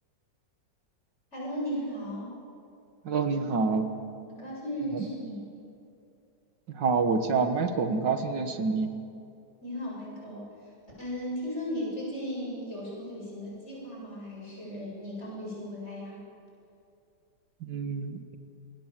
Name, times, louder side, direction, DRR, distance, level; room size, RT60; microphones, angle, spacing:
voice 1, 1.3-2.3 4.3-5.7 9.6-10.5 11.0-16.2, equal, 40° left, -4 dB, 8.2 m, -36 dB
voice 2, 3.0-3.9 4.9-5.1 6.7-8.9 17.6-18.4, right 4 dB, 90° right, 8 dB, 2.2 m, -27 dB
27.0 x 21.0 x 7.6 m, 2.6 s
omnidirectional pair, 1.9 m